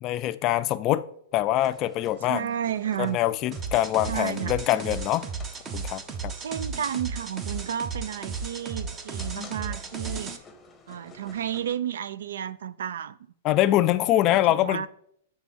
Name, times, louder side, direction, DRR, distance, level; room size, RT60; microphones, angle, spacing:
voice 1, 0.0-1.1 1.3-2.4 3.0-5.2 5.7-6.3 13.4-14.9, left 14 dB, 30° left, 0.4 m, -24 dB
sound 1, 1.5-11.8, left 3 dB, 10° left, 0.8 m, -49 dB
voice 2, 2.3-3.2 4.1-4.6 6.4-10.3 10.9-13.2 14.3-14.9, right 9 dB, 80° right, 0.4 m, -32 dB
sound 2, 3.5-10.4, right 5 dB, 20° right, 0.7 m, -35 dB
8.3 x 3.5 x 6.1 m
hypercardioid pair, 150°, 0 cm